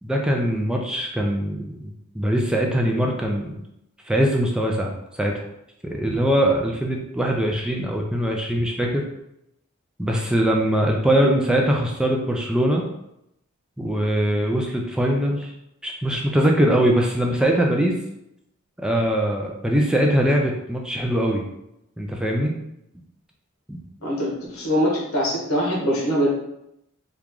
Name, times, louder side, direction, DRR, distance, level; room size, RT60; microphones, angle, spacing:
voice 1, 0.0-3.5 4.1-4.9 5.2-5.4 5.8-9.0 10.0-12.8 13.8-15.5 15.8-18.0 18.8-21.4 22.0-22.5 23.7-23.8, right 1 dB, 5° right, 0 dB, 0.3 m, -22 dB
voice 2, 24.0-26.3, equal, 80° left, -2 dB, 1.0 m, -23 dB
3.0 x 2.4 x 3.6 m, 0.82 s
head